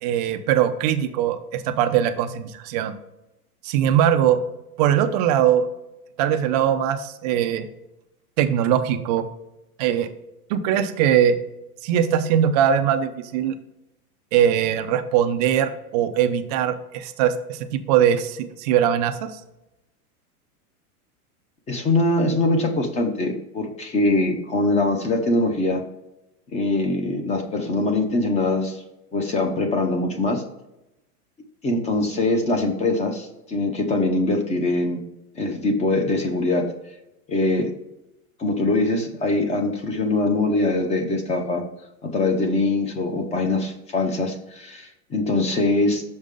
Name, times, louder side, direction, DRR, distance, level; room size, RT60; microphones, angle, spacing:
voice 1, 0.0-3.0 3.6-4.4 4.8-5.7 6.2-7.7 8.4-9.2 9.8-10.1 10.5-11.4 11.8-13.5 14.3-19.3, right 9 dB, 30° right, 9 dB, 0.3 m, -21 dB
voice 2, 21.7-25.8 26.5-28.8 29.1-30.4 31.6-35.0 35.4-36.6 37.3-37.7 38.4-41.6 42.0-46.0, left 2 dB, 15° left, 5 dB, 0.6 m, -22 dB
6.4 x 5.3 x 3.6 m, 0.91 s
supercardioid pair, 140°, 45 cm